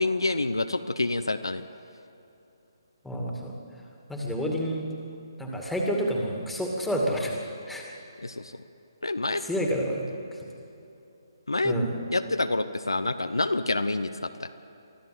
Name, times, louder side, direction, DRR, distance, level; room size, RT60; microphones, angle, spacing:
voice 1, 0.0-1.6 8.2-8.5 9.0-9.4 11.5-11.7 12.1-14.6, left 2 dB, 75° left, 10 dB, 0.8 m, -27 dB
voice 2, 3.0-3.5 4.1-4.9 5.4-7.3 7.7-7.8 9.4-10.1 11.6-11.9, equal, ahead, -1 dB, 2.4 m, -28 dB
24.0 x 14.5 x 7.8 m, 2.8 s
figure-of-eight pair, 140°, 2 cm